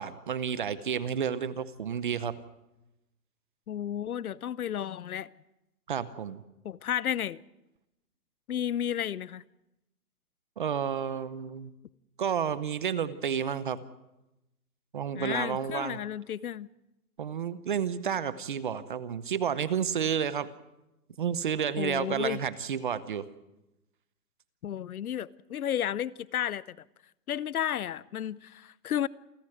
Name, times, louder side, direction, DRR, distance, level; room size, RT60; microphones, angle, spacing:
voice 1, 0.0-2.4 5.9-6.4 10.6-11.7 12.2-13.8 14.9-16.0 17.2-20.5 21.2-23.2, right 8 dB, 30° right, 0.8 m, -31 dB
voice 2, 3.7-5.3 6.6-7.4 8.5-9.4 15.1-16.7 21.8-22.4 24.6-26.8 27.3-29.1, left 10 dB, 65° left, 0.8 m, -32 dB
28.5 x 13.5 x 7.8 m
hypercardioid pair, 165°, 48 cm